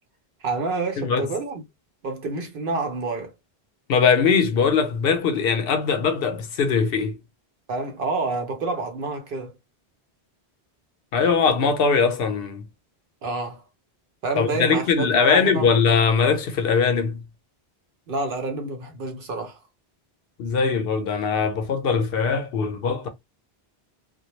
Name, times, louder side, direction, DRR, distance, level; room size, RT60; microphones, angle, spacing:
voice 1, 0.4-1.6 2.0-3.3 7.7-9.5 13.2-13.6 14.2-15.7 18.1-19.6, right 3 dB, 60° right, 0.9 m, -28 dB
voice 2, 1.0-1.3 3.9-7.2 11.1-12.7 14.4-17.2 20.4-23.1, left 5 dB, 70° left, 0.7 m, -21 dB
2.2 x 2.1 x 2.9 m
omnidirectional pair, 1.0 m